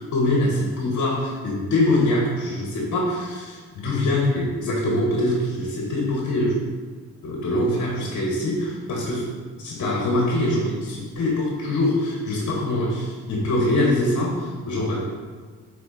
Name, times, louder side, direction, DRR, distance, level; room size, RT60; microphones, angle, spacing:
voice 1, 0.0-6.6 7.2-9.3 9.6-15.2, left 1 dB, 60° left, -2 dB, 1.6 m, -23 dB
7.7 x 4.5 x 4.3 m, 1.5 s
cardioid pair, 90°, 30 cm